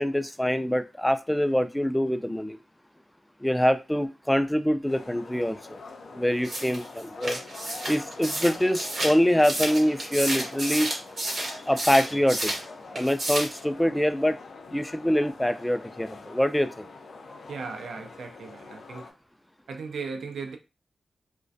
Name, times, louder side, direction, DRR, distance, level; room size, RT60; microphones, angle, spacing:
voice 1, 0.0-2.6 3.4-5.8 6.1-7.4 7.9-10.9 11.7-12.5 12.9-14.4 14.7-16.9, equal, 5° left, 0.3 m, -24 dB
sound 1, 4.9-19.1, left 3 dB, 80° left, 0.4 m, -44 dB
sound 2, 6.4-12.7 12.9-13.6, right 1 dB, 65° right, 0.9 m, -31 dB
voice 2, 17.5-19.1 19.7-20.6, right 5 dB, 85° right, 0.4 m, -37 dB
2.3 x 2.1 x 2.5 m
cardioid pair, 55°, 0 cm